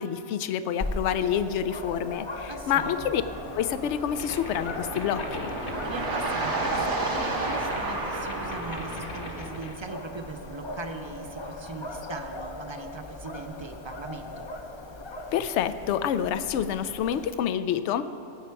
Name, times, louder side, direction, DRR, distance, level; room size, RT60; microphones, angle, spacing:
voice 1, 0.0-3.2 3.5-5.5 15.3-18.0, left 9 dB, 80° left, 12 dB, 0.9 m, -28 dB
Dog, 0.8-17.3, left 2 dB, 30° left, 0.6 m, -40 dB
voice 2, 2.5-3.1 5.6-14.5, right 3 dB, 30° right, 6 dB, 0.6 m, -40 dB
sound 1, 3.3-9.7, right 2 dB, 80° right, 1.9 m, -32 dB
sound 2, 4.1-9.8, left 3 dB, 55° left, 1.1 m, -41 dB
18.0 x 8.7 x 4.6 m, 2.6 s
omnidirectional pair, 1.2 m